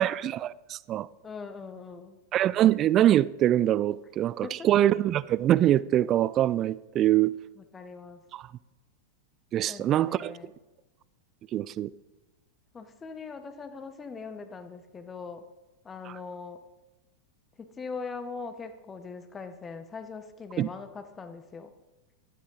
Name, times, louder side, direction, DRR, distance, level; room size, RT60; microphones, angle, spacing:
voice 1, 0.0-1.1 2.3-7.3 8.3-8.4 9.5-10.4 11.5-11.9 20.6-20.7, right 12 dB, 30° right, 0.4 m, -24 dB
voice 2, 1.2-2.2 4.4-4.7 7.6-8.2 9.7-10.5 12.7-15.4 15.8-16.6 17.6-21.7, left 4 dB, 20° left, 1.1 m, -41 dB
16.0 x 12.5 x 4.0 m
figure-of-eight pair, 90°, 0 cm